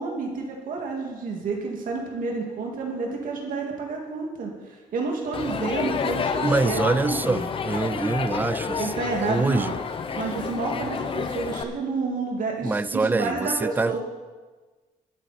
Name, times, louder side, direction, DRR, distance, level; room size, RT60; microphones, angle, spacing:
voice 1, 0.0-7.5 8.8-9.7 10.2-14.0, right 4 dB, 75° right, 0 dB, 2.1 m, -30 dB
Crowd, 5.3-11.6, left 6 dB, 40° left, 0.7 m, -29 dB
voice 2, 6.4-9.7 12.6-14.0, right 3 dB, 15° right, 16 dB, 0.3 m, -25 dB
21.5 x 8.2 x 4.2 m, 1.3 s
wide cardioid pair, 165°, 14 cm